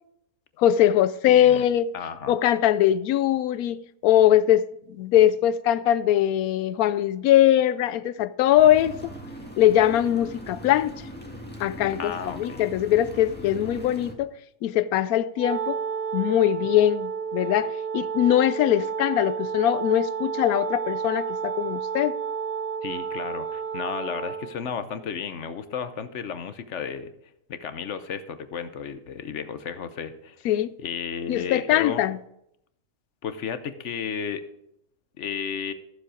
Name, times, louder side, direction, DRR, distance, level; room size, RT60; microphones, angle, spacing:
voice 1, 0.6-1.9 2.3-3.8 4.0-8.9 9.6-10.9 11.6-14.3 14.6-15.8 16.1-22.2 30.4-30.7 31.3-32.2, left 12 dB, 90° left, 1.0 m, -21 dB
voice 2, 1.3-1.7 1.9-2.4 12.0-12.6 22.8-27.1 27.5-30.5 30.8-32.1 33.2-34.4 35.2-35.7, left 7 dB, 60° left, 1.1 m, -33 dB
sound 1, 8.5-14.1, right 1 dB, 5° left, 1.6 m, -40 dB
Wind instrument woodwind instrument, 15.3-24.6, right 6 dB, 35° right, 1.2 m, -31 dB
14.0 x 7.5 x 5.0 m
omnidirectional pair, 1.5 m